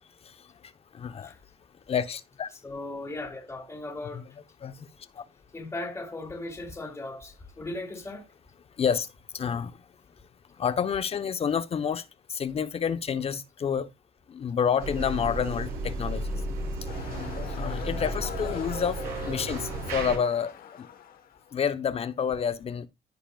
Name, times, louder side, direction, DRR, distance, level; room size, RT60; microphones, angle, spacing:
voice 1, 0.2-1.3 1.9-2.5 4.1-4.2 4.6-5.2 8.8-9.1 9.3-9.8 10.6-13.9 14.3-16.4 16.9-20.9 21.5-22.9, left 7 dB, 35° left, 0.8 m, -29 dB
voice 2, 2.6-4.3 5.5-8.3, left 2 dB, 15° left, 2.3 m, -37 dB
sound 1, 14.8-20.2, right 2 dB, 60° right, 4.1 m, -33 dB
sound 2, 16.9-21.7, left 9 dB, 60° left, 1.2 m, -43 dB
15.0 x 5.1 x 2.3 m
cardioid pair, 110°, 17 cm